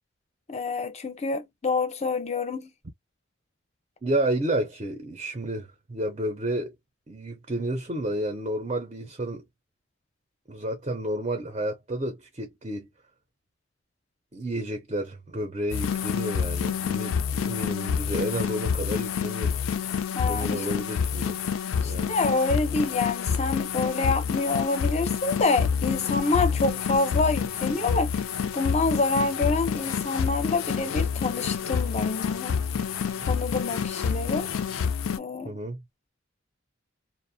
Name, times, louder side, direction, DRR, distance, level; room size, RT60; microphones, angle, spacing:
voice 1, 0.5-2.7 20.1-20.7 21.8-28.1 28.5-32.6 33.2-34.5 35.2-35.6, left 3 dB, 35° left, 0.5 m, -27 dB
voice 2, 4.0-6.7 7.1-9.4 10.5-12.9 14.3-19.7 20.3-21.4 21.8-22.1 35.4-35.8, right 1 dB, 30° right, 0.5 m, -31 dB
sound 1, 15.7-35.2, left 6 dB, 85° left, 0.4 m, -28 dB
sound 2, 25.7-34.8, right 4 dB, 75° right, 0.6 m, -50 dB
2.4 x 2.0 x 2.6 m
head